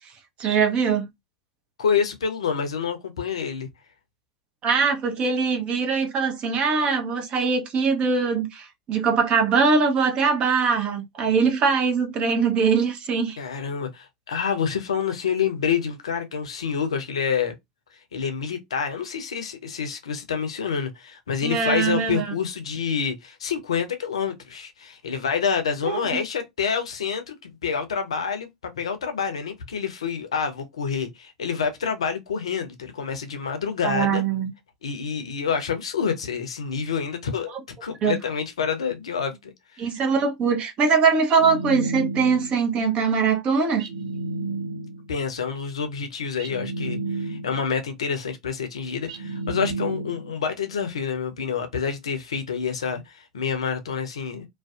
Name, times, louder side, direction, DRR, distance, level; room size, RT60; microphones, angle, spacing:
voice 1, 0.4-1.1 4.6-13.4 21.4-22.3 25.8-26.2 33.8-34.5 38.0-38.2 39.8-43.8, right 5 dB, 35° right, 0.7 m, -22 dB
voice 2, 1.8-3.7 13.4-17.6 18.1-34.2 34.8-37.5 37.8-39.9 45.1-54.5, left 6 dB, 75° left, 0.5 m, -27 dB
sound 1, 41.3-42.6 43.8-45.1 46.4-47.8 49.1-50.4, right 2 dB, 70° right, 0.5 m, -32 dB
2.5 x 2.1 x 2.3 m
figure-of-eight pair, 85°, 3 cm